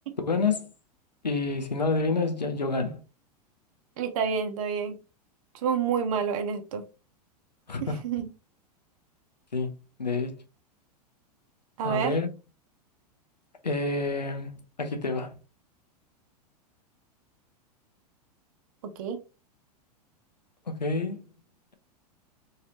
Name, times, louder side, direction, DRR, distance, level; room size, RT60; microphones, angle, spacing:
voice 1, 0.2-0.7 1.2-3.0 7.7-8.0 9.5-9.7 10.0-10.3 11.8-12.3 13.6-15.4 20.7-21.2, left 3 dB, 90° left, 0.7 m, -28 dB
voice 2, 4.0-4.9 5.6-6.8 8.0-8.3 11.8-12.2 19.0-19.2, right 7 dB, 55° right, 0.7 m, -28 dB
3.1 x 2.7 x 2.9 m
figure-of-eight pair, 95°, 21 cm